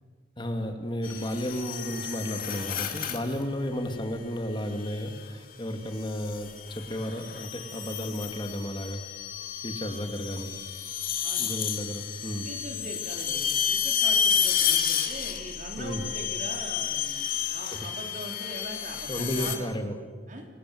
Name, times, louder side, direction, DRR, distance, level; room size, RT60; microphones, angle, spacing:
voice 1, 0.4-9.0 9.6-10.6 11.4-12.5 15.8-16.0 17.7-17.8 19.1-20.0, equal, 25° left, 5 dB, 2.3 m, -33 dB
sound 1, 1.0-3.4 4.8-5.2 6.0-19.6, left 8 dB, 50° left, 2.5 m, -31 dB
voice 2, 12.4-19.8 20.3-20.5, right 1 dB, 45° right, 3 dB, 3.9 m, -41 dB
29.5 x 21.5 x 7.9 m, 1.5 s
head